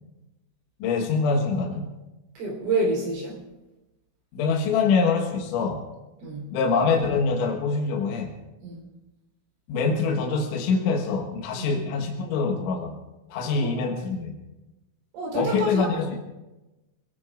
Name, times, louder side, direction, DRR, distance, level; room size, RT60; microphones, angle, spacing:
voice 1, 0.8-1.9 4.3-5.9 6.5-8.3 9.7-13.0 13.3-14.3 15.4-16.2, left 4 dB, 75° left, 0 dB, 3.8 m, -24 dB
voice 2, 2.4-3.4 6.2-6.6 8.6-8.9 11.6-11.7 15.1-16.0, right 2 dB, 70° right, -3 dB, 6.4 m, -28 dB
28.0 x 19.0 x 2.5 m, 1.0 s
omnidirectional pair, 5.7 m